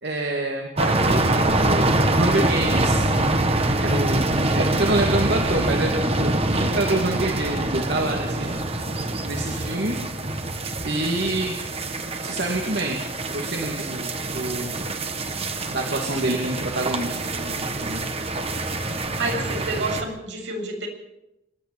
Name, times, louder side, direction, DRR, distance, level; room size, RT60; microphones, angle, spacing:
voice 1, 0.0-3.0 3.8-8.5 9.2-10.0 10.8-11.6 12.2-13.0 13.3-14.7 15.7-18.1, right 2 dB, 65° right, 1 dB, 2.6 m, -27 dB
sound 1, 0.8-20.0, right 2 dB, 35° right, 1.9 m, -25 dB
voice 2, 19.2-20.9, right 2 dB, 85° right, 1 dB, 7.2 m, -29 dB
25.5 x 11.5 x 8.9 m, 0.89 s
head